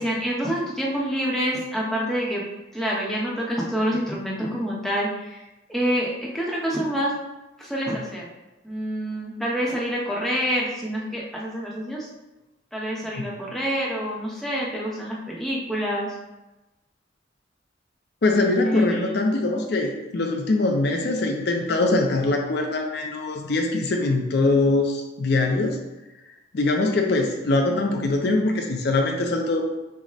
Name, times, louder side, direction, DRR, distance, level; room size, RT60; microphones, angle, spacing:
voice 1, 0.0-2.4 2.7-5.4 5.7-7.1 7.6-8.3 8.6-12.1 12.7-16.1 18.6-19.2, equal, ahead, -5 dB, 0.8 m, -27 dB
voice 2, 18.2-25.8 26.5-29.6, left 2 dB, 60° left, 2 dB, 0.5 m, -22 dB
6.0 x 2.1 x 4.0 m, 1.0 s
head